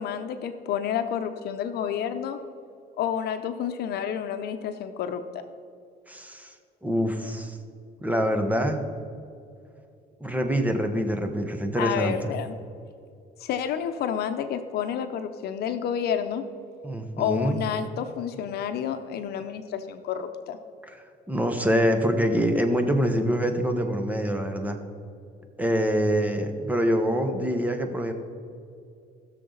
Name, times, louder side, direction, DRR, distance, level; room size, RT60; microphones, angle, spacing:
voice 1, 0.0-2.4 3.0-5.2 11.8-12.6 13.4-16.4 17.2-20.6, left 8 dB, 70° left, 8 dB, 0.8 m, -29 dB
voice 2, 6.1-6.5 6.8-7.6 8.0-8.8 10.2-12.2 16.8-17.6 20.9-21.0 21.3-24.8 25.6-28.1, equal, 10° right, 5 dB, 1.3 m, -25 dB
19.5 x 6.7 x 4.0 m, 2.5 s
cardioid pair, 110°, 17 cm